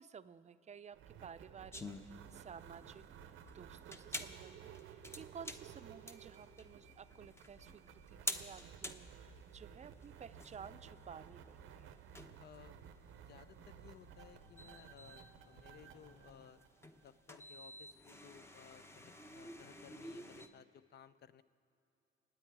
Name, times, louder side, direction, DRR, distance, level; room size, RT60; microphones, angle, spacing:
voice 1, 0.0-12.0, right 7 dB, 35° right, 13 dB, 0.5 m, -54 dB
sound 1, 0.9-17.4, right 10 dB, 85° right, 0.7 m, -56 dB
sound 2, 1.1-16.5, left 1 dB, 90° left, 2.6 m, -64 dB
sound 3, 1.7-20.5, left 1 dB, 15° left, 0.8 m, -50 dB
voice 2, 12.4-12.7 13.2-16.6 17.0-21.4, left 8 dB, 55° left, 14 dB, 0.6 m, -59 dB
26.5 x 9.3 x 4.7 m, 2.8 s
cardioid pair, 90°, 20 cm